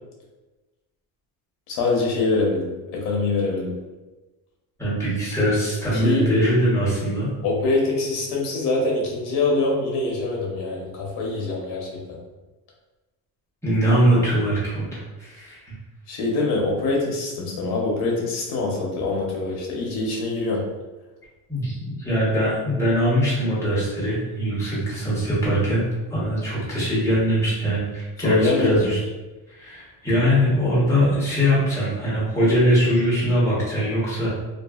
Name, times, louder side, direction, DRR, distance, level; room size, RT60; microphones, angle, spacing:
voice 1, 1.7-3.7 5.9-6.3 7.4-12.2 16.1-20.6 28.2-28.9, left 3 dB, 75° left, -2 dB, 0.8 m, -24 dB
voice 2, 4.8-7.3 13.6-15.6 21.5-25.8 26.1-29.0 29.6-34.3, equal, 5° left, -9 dB, 0.9 m, -22 dB
2.6 x 2.4 x 2.3 m, 1.2 s
cardioid pair, 155°, 39 cm